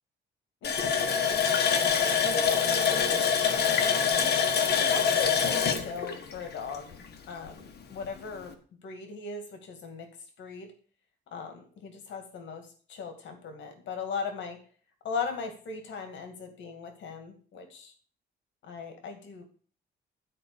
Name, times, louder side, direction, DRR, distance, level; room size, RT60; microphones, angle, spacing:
voice 1, 0.6-3.2 3.4-3.9 4.1-4.3 4.8-6.9 7.3-8.5 8.8-10.1 10.4-10.7 11.3-14.6 15.0-17.9 18.6-19.4, left 5 dB, 75° left, 5 dB, 2.3 m, -39 dB
Water tap faucet, 0.6-7.1 7.5-7.6 8.0-8.2, left 7 dB, 60° left, 1.6 m, -25 dB
12.5 x 4.8 x 6.9 m, 0.41 s
cardioid pair, 160°, 19 cm